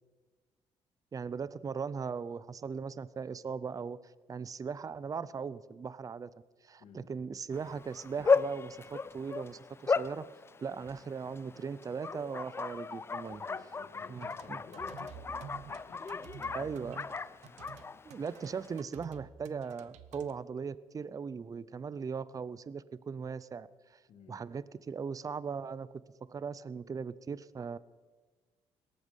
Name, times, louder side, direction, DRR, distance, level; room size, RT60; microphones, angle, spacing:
voice 1, 1.1-6.3 6.6-10.2 10.6-13.4 14.1-14.6 16.5-17.0 18.0-24.0 24.3-25.9 26.3-27.8, right 6 dB, 30° right, 18 dB, 0.6 m, -39 dB
Bark, 7.5-18.8, left 4 dB, 20° left, 0.4 m, -36 dB
voice 2, 13.2-16.9 17.4-18.0 24.1-24.4, left 5 dB, 70° left, 6 dB, 2.5 m, -55 dB
sound 1, 14.1-20.3, right 9 dB, 85° right, 0.9 m, -50 dB
18.0 x 13.5 x 5.4 m, 1.4 s
cardioid pair, 95°, 11 cm